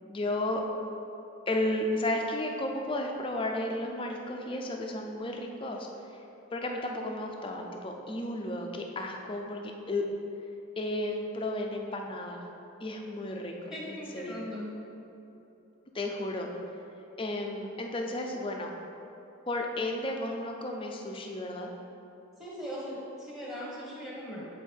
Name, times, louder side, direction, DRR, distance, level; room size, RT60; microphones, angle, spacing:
voice 1, 0.0-0.6 1.5-5.9 6.5-10.0 10.8-12.4 12.8-13.5 13.9-14.0 14.2-14.3 15.9-16.5 17.2-18.7 19.5-21.7, left 1 dB, 25° left, 2 dB, 0.5 m, -33 dB
voice 2, 13.7-14.8 22.4-24.4, equal, ahead, -6 dB, 1.1 m, -39 dB
8.2 x 3.9 x 4.4 m, 2.9 s
head